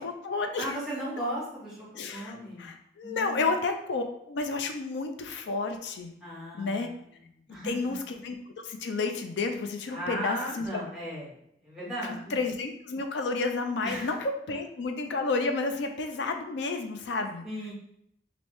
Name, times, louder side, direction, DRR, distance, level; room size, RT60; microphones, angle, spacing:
voice 1, 0.0-0.8 1.9-6.1 6.5-6.9 7.6-8.4 8.6-10.8 12.1-17.4, left 3 dB, 75° left, 5 dB, 0.4 m, -31 dB
voice 2, 0.6-1.8 2.1-2.7 3.0-3.5 6.2-7.2 7.5-7.9 9.9-11.3 11.6-12.3 13.8-14.1 17.4-17.7, equal, 5° right, -8 dB, 1.1 m, -36 dB
2.9 x 2.6 x 3.1 m, 0.73 s
head